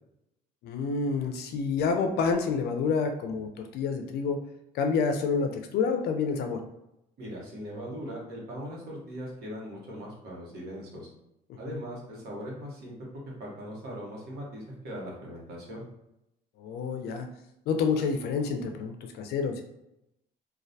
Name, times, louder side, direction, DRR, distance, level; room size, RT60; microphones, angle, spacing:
voice 1, 0.6-4.4 4.7-6.6 11.7-11.8 16.6-17.3 17.7-19.6, left 5 dB, 70° left, 5 dB, 0.4 m, -28 dB
voice 2, 7.2-11.1 11.6-15.8, equal, 75° right, -2 dB, 1.0 m, -40 dB
2.2 x 2.1 x 2.6 m, 0.86 s
cardioid pair, 110°, 17 cm